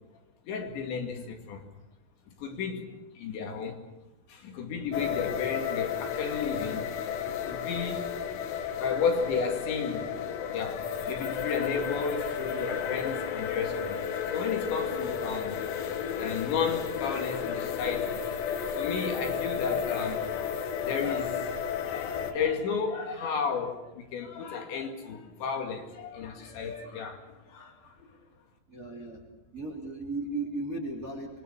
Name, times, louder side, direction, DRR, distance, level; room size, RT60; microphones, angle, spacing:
voice 1, 0.5-1.7 2.3-3.8 4.3-6.9 7.3-8.2 8.5-10.2 10.5-15.7 16.2-28.1, left 5 dB, 65° left, 4.4 m, -33 dB
sound 1, 4.9-22.3, left 7 dB, 85° left, 4.5 m, -33 dB
voice 2, 28.7-29.2 29.5-31.4, right 2 dB, 20° right, 2.7 m, -35 dB
27.0 x 22.5 x 7.0 m
omnidirectional pair, 5.8 m